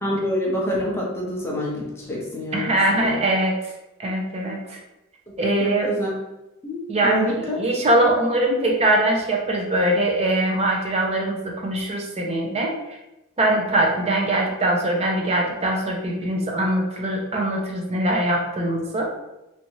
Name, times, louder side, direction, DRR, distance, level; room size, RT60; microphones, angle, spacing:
voice 1, 0.0-3.2 5.3-5.4 5.6-6.1 6.6-7.6, left 1 dB, 10° left, -4 dB, 0.6 m, -27 dB
voice 2, 2.5-3.5 4.0-4.8 5.4-6.0 6.9-12.7 13.4-19.1, right 1 dB, 30° right, 0 dB, 0.6 m, -22 dB
3.3 x 2.7 x 3.0 m, 0.95 s
head